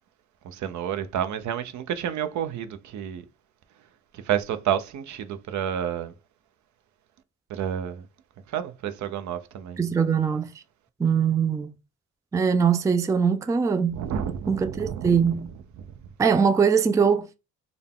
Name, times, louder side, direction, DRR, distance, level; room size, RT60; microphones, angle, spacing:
voice 1, 0.4-3.2 4.3-6.1 7.5-8.0 8.5-9.8 13.9-15.2, right 9 dB, 70° right, 0.6 m, -30 dB
voice 2, 9.8-10.5 11.0-11.7 12.3-14.0 14.5-15.5 16.2-17.3, right 6 dB, 10° right, 0.3 m, -22 dB
3.8 x 2.3 x 3.6 m
cardioid pair, 90°, 30 cm